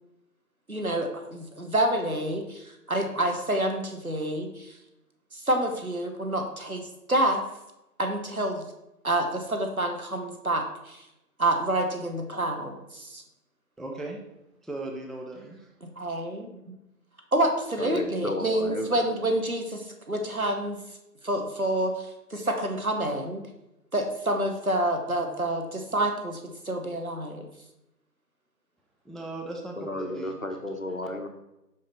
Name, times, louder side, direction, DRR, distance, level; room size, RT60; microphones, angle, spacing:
voice 1, 0.7-4.8 5.3-7.4 8.0-8.7 9.0-11.1 11.4-13.2 15.8-16.5 17.3-20.8 21.2-23.4 23.9-27.5, right 1 dB, 55° right, 4 dB, 1.0 m, -28 dB
voice 2, 13.8-14.2 14.6-15.7 29.0-30.4, right 2 dB, ahead, 1 dB, 0.5 m, -37 dB
voice 3, 17.8-19.0 29.8-31.3, left 1 dB, 55° left, 5 dB, 0.8 m, -33 dB
5.3 x 5.0 x 4.3 m, 0.91 s
figure-of-eight pair, 175°, 50 cm